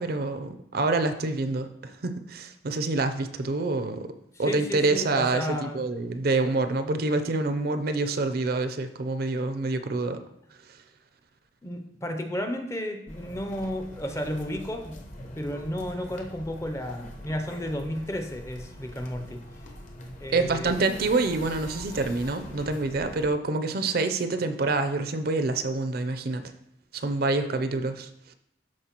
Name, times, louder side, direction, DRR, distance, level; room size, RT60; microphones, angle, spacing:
voice 1, 0.0-4.1 4.4-10.2 20.3-26.5 26.9-28.1, right 3 dB, 55° right, 8 dB, 0.5 m, -27 dB
voice 2, 4.4-5.8 11.6-15.0 15.4-19.4 20.2-20.8, equal, 15° left, 6 dB, 0.5 m, -33 dB
sound 1, 13.1-23.3, left 1 dB, 40° left, 0.8 m, -43 dB
12.5 x 4.4 x 2.9 m, 0.76 s
head